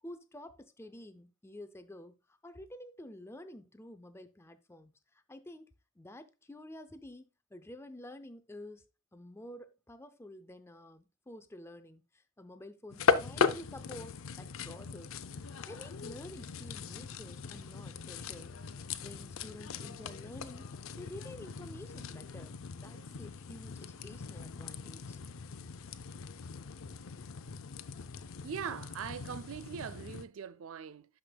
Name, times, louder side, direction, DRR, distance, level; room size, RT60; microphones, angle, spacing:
voice 1, 0.0-5.7 6.0-8.9 9.1-15.2 15.7-20.7 21.0-22.6 22.8-25.2 26.9-27.0 28.6-28.8, left 1 dB, 10° left, 0.4 m, -50 dB
sound 1, 12.9-30.3, left 5 dB, 70° left, 0.5 m, -38 dB
voice 2, 28.4-31.1, right 7 dB, 70° right, 0.4 m, -41 dB
12.0 x 5.0 x 2.3 m
head